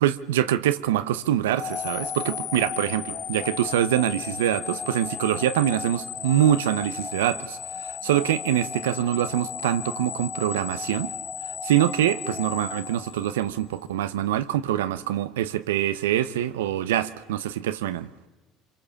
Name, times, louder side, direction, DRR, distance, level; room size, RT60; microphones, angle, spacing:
voice 1, 0.0-11.1 11.6-18.1, right 12 dB, 85° right, 0.8 m, -24 dB
sound 1, 1.6-13.7, left 8 dB, 50° left, 0.8 m, -35 dB
26.0 x 24.0 x 7.1 m
hypercardioid pair, 75°, 0 cm